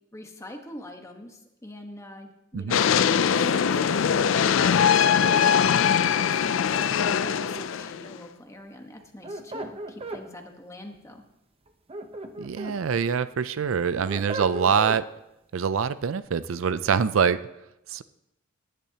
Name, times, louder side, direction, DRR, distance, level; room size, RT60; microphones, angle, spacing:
voice 1, 0.1-11.2, left 1 dB, 15° left, 4 dB, 1.2 m, -43 dB
Subway train arrive, 2.7-8.2, left 8 dB, 70° left, 0.4 m, -22 dB
sound 1, 3.3-5.4 6.7-7.8 9.0-10.2 11.7-12.8 13.2-15.0, right 1 dB, 30° right, 0.8 m, -37 dB
voice 2, 12.4-15.0 15.5-17.4 17.9-18.0, right 6 dB, 80° right, 14 dB, 0.4 m, -24 dB
19.0 x 10.0 x 2.9 m, 0.85 s
head